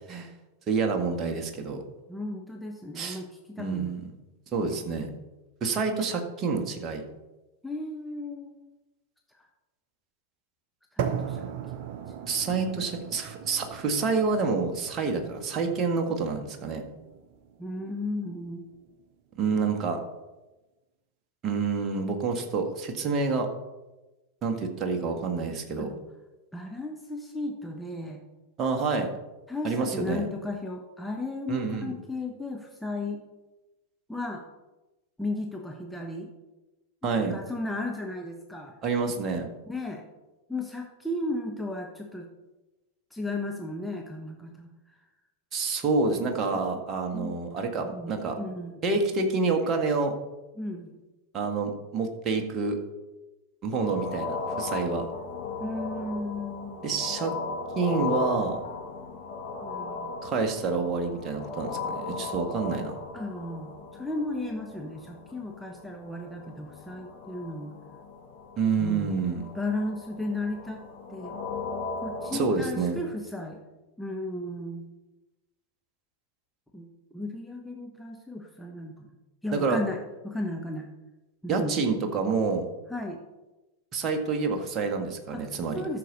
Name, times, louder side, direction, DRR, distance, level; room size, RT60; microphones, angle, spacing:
voice 1, 0.7-1.8 3.0-3.2 3.6-4.1 4.5-5.1 5.6-7.0 12.3-16.8 19.4-20.0 21.4-23.5 24.4-25.9 28.6-29.1 29.6-30.2 31.5-31.9 37.0-37.3 38.8-39.5 45.5-48.4 48.8-50.1 51.3-52.8 53.6-55.1 56.8-57.3 57.8-58.6 60.2-63.0 68.6-69.5 72.3-73.0 79.5-79.8 81.5-82.7 83.9-85.8, right 4 dB, 30° right, 3 dB, 1.7 m, -28 dB
voice 2, 2.1-4.0 7.6-8.7 9.4-9.5 10.9-11.4 17.6-18.6 25.8-26.0 26.5-28.2 29.5-33.2 34.1-34.4 35.2-36.3 37.0-38.7 39.7-40.0 40.5-42.3 43.1-44.7 46.5-46.8 47.1-47.6 47.8-49.1 50.6-51.0 55.6-57.1 59.6-60.1 63.1-67.8 68.8-69.2 69.5-70.8 71.1-71.4 72.0-73.6 74.0-74.8 76.7-76.9 77.1-79.1 79.4-80.0 80.2-80.9 81.4-81.9 82.9-83.2 85.3-85.4 85.7-86.0, left 2 dB, 5° left, 2 dB, 1.1 m, -35 dB
sound 1, 11.0-19.0, right 8 dB, 45° right, 1.0 m, -38 dB
sound 2, 53.7-72.4, left 4 dB, 50° left, 3.1 m, -37 dB
13.5 x 6.8 x 4.1 m, 1.1 s
figure-of-eight pair, 90°, 0 cm